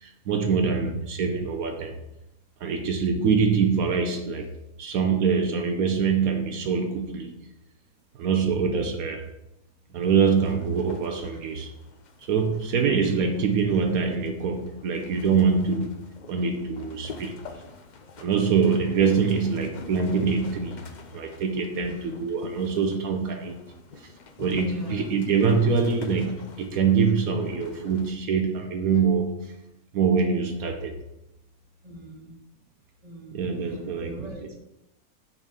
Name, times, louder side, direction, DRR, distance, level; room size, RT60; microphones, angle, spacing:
voice 1, 0.0-2.0 2.6-4.5 4.8-7.4 8.2-9.3 9.9-11.7 12.2-16.0 16.3-17.4 18.2-20.9 21.1-21.9 22.2-24.1 24.4-29.6 29.9-31.0 33.3-34.3, right 5 dB, 75° right, 5 dB, 1.1 m, -24 dB
sound 1, 10.0-28.1, left 4 dB, 70° left, 0.4 m, -45 dB
voice 2, 21.7-22.2 24.6-25.2 31.8-32.3 33.0-34.5, equal, 30° right, 0 dB, 1.3 m, -41 dB
6.2 x 4.0 x 5.2 m, 0.88 s
omnidirectional pair, 1.6 m